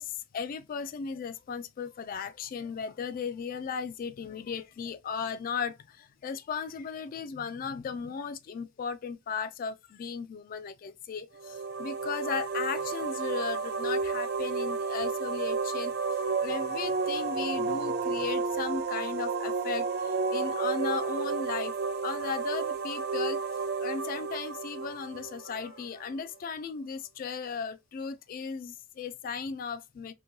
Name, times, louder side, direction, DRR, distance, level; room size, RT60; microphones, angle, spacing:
voice 1, 0.0-15.9 16.4-21.7 22.0-23.4 23.8-30.1, left 6 dB, 45° left, 0.3 m, -36 dB
sound 1, 11.4-26.0, right 4 dB, 55° right, 0.5 m, -31 dB
3.0 x 2.2 x 2.6 m
head